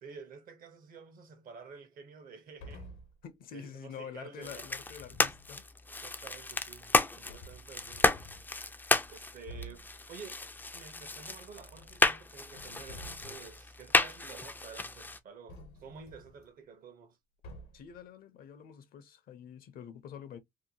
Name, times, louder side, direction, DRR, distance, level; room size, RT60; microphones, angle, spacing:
voice 1, 0.0-2.9 3.5-4.7 5.9-8.1 9.1-10.4 10.7-17.2, right 5 dB, 55° right, 0.8 m, -50 dB
sound 1, 2.6-3.2 4.9-5.5 6.7-6.8 7.3-8.5 9.0-9.1 9.5-9.9 11.5-12.2 12.5-13.6 15.5-16.5 17.4-18.0, equal, 80° left, 1.0 m, -49 dB
voice 2, 3.2-5.6 17.7-20.4, left 8 dB, 60° left, 0.6 m, -47 dB
sound 2, 4.4-15.2, left 3 dB, 10° left, 0.3 m, -32 dB
2.8 x 2.2 x 2.6 m
cardioid pair, 110°, 17 cm